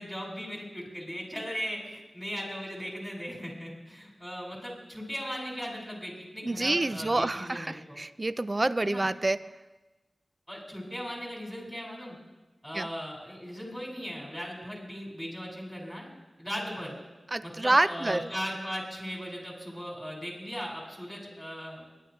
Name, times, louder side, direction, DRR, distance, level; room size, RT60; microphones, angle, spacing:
voice 1, 0.0-8.0 8.8-9.1 10.5-12.2 12.6-16.1 16.4-17.0 17.4-21.9, equal, ahead, -2 dB, 5.2 m, -38 dB
voice 2, 6.4-9.4 12.7-12.9 17.3-18.3, right 2 dB, 35° right, 14 dB, 0.5 m, -27 dB
22.0 x 11.0 x 3.1 m, 1.1 s
cardioid pair, 50°, 0 cm